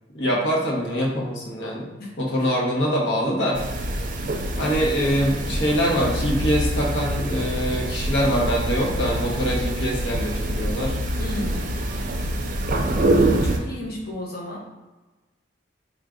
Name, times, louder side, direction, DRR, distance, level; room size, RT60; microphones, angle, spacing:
voice 1, 0.1-1.9 2.2-3.6 4.6-11.0, equal, 85° left, -3 dB, 1.0 m, -24 dB
voice 2, 2.0-2.5 11.2-11.8 13.3-14.6, left 1 dB, 60° left, -3 dB, 1.0 m, -34 dB
sound 1, 3.5-13.6, right 1 dB, 45° right, 0.4 m, -25 dB
3.6 x 2.4 x 3.7 m, 1.2 s
head